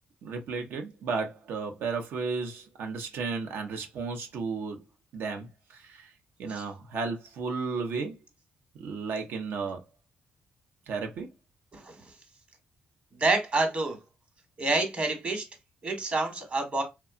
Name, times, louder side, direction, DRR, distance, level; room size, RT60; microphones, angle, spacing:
voice 1, 0.2-4.8 5.1-6.1 6.4-8.2 8.8-9.8 10.9-11.3, right 4 dB, 80° right, 0.6 m, -33 dB
voice 2, 13.2-14.0 14.6-15.4 15.8-16.8, right 3 dB, 40° right, 1.1 m, -27 dB
2.8 x 2.2 x 2.4 m
cardioid pair, 85°, 4 cm